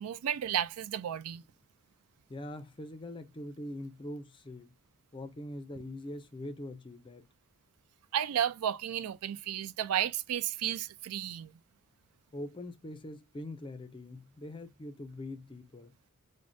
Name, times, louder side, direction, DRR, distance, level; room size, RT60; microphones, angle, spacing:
voice 1, 0.0-1.4 8.1-11.5, right 10 dB, 80° right, 0.3 m, -33 dB
voice 2, 2.3-4.7 5.1-7.2 12.3-15.9, left 1 dB, 20° left, 0.4 m, -43 dB
4.7 x 2.1 x 2.5 m
head